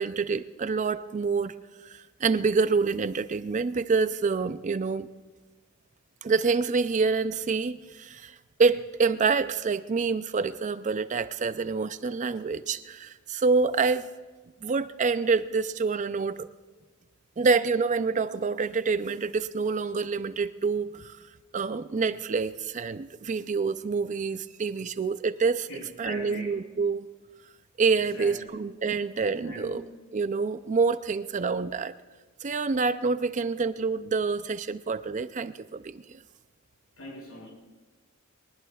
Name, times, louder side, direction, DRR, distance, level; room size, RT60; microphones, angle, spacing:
voice 1, 0.0-1.5 1.8-5.1 6.2-8.3 8.6-14.1 14.6-16.5 17.4-21.2 21.5-25.7 26.0-27.1 27.8-29.8 30.1-31.9 32.4-36.0, right 4 dB, 35° right, 13 dB, 0.4 m, -27 dB
voice 2, 25.7-26.6 27.9-28.5 29.4-29.9 37.0-37.5, left 1 dB, 75° left, -1 dB, 5.8 m, -41 dB
23.5 x 19.5 x 2.4 m, 1.3 s
head